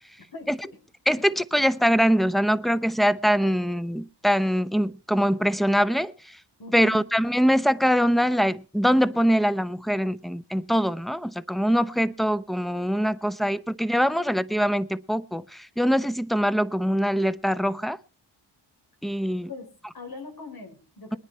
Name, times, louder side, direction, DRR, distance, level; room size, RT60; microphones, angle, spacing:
voice 1, 1.1-6.4 6.7-18.0 19.0-19.5, equal, ahead, 0.7 m, -23 dB
voice 2, 6.6-7.1 19.5-21.2, left 4 dB, 55° left, 5.0 m, -41 dB
21.5 x 9.7 x 4.3 m
cardioid pair, 75°, 43 cm